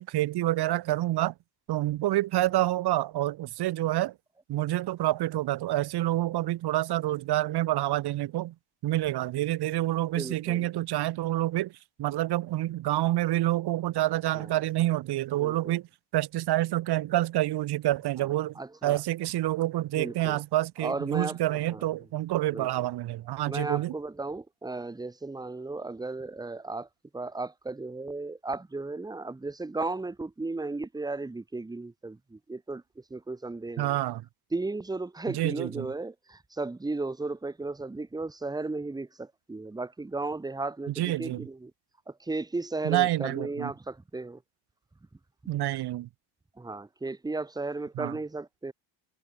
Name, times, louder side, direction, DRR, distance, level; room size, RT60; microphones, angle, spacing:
voice 1, 0.0-1.3 1.7-4.1 4.5-8.5 8.8-11.7 12.0-15.9 16.1-23.9 33.8-34.2 35.3-35.9 41.0-41.5 42.8-43.7 45.5-46.1 48.0-48.1, right 15 dB, 50° right, 0.7 m, -28 dB
voice 2, 10.2-10.7 14.3-14.5 15.3-15.8 18.2-18.3 18.5-19.0 20.0-20.4 20.8-21.9 22.5-22.7 23.5-26.9 27.1-34.0 34.5-41.7 42.1-44.4 46.6-48.7, right 3 dB, 10° right, 0.9 m, -35 dB
cardioid pair, 160°, 49 cm